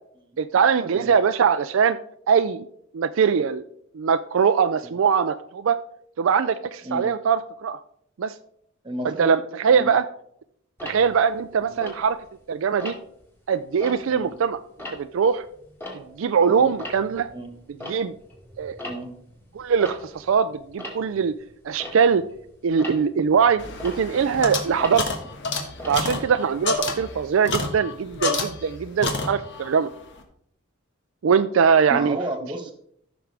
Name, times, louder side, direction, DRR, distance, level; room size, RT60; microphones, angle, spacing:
voice 1, 0.4-2.0 2.3-2.6 2.9-3.6 3.9-5.8 6.2-7.8 8.2-8.3 9.0-10.0 10.8-12.2 12.5-12.9 13.5-14.6 14.9-15.4 16.2-17.3 17.9-18.1 18.6-18.8 19.5-21.3 21.6-22.2 22.6-25.0 25.9-29.9 31.2-32.2, right 6 dB, 65° right, 10 dB, 0.4 m, -21 dB
voice 2, 8.8-9.3 9.7-9.9 11.6-11.8 14.1-14.3 16.6-16.7 17.3-17.5 18.9-19.1 31.9-32.7, right 1 dB, 25° right, 5 dB, 1.4 m, -32 dB
Tick-tock, 10.8-12.4 12.8-13.2 13.7-16.4 16.6-26.8, left 1 dB, 10° left, 2.1 m, -41 dB
sound 1, 23.6-28.8 29.0-29.7, left 3 dB, 60° left, 1.4 m, -29 dB
14.5 x 6.0 x 3.4 m, 0.69 s
head